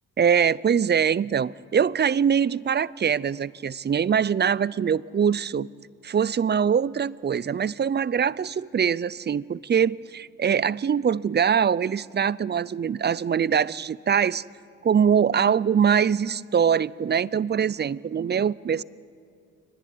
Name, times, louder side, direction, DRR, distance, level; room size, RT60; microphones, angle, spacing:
voice 1, 0.2-5.7 6.0-14.4 14.8-18.8, right 7 dB, 35° right, 0.5 m, -23 dB
23.5 x 19.5 x 9.5 m
supercardioid pair, 65°, 32 cm